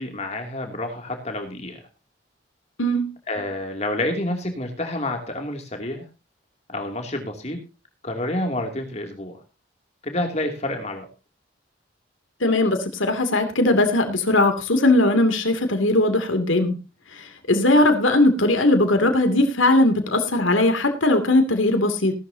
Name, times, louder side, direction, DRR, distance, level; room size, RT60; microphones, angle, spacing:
voice 1, 0.0-1.8 3.3-6.0 6.7-7.6 8.0-9.4 10.0-11.1, left 1 dB, 35° left, 4 dB, 2.7 m, -28 dB
voice 2, 12.4-16.7 17.1-22.1, left 2 dB, 85° left, 6 dB, 2.7 m, -19 dB
18.0 x 12.5 x 2.8 m, 0.29 s
head